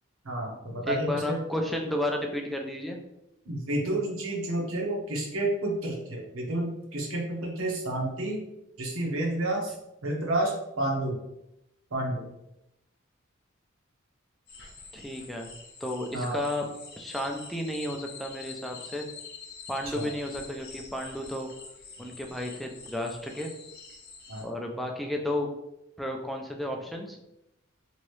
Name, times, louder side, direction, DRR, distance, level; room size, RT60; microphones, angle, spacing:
voice 1, 0.2-1.7 3.5-8.4 8.8-9.8 10.0-10.5 10.8-11.2 11.9-12.2 16.1-16.4 19.9-20.1 24.3-24.5, right 1 dB, 85° right, -2 dB, 0.9 m, -30 dB
voice 2, 0.9-3.0 14.9-15.5 15.8-16.6 17.0-19.1 19.7-21.5 22.0-23.5 24.4-25.5 26.0-27.2, left 1 dB, ahead, 1 dB, 0.3 m, -32 dB
sound 1, 14.5-24.4, left 5 dB, 50° left, 0.6 m, -46 dB
2.9 x 2.7 x 3.1 m, 0.87 s
head